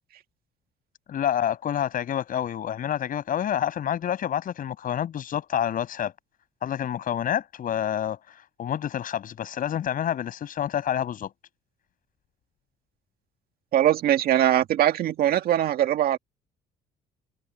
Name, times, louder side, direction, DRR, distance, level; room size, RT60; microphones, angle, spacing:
voice 1, 1.1-6.1 6.6-11.3, left 10 dB, 55° left, 7.4 m, -28 dB
voice 2, 13.7-16.2, right 11 dB, 65° right, 2.0 m, -21 dB
cardioid pair, 110°, 17 cm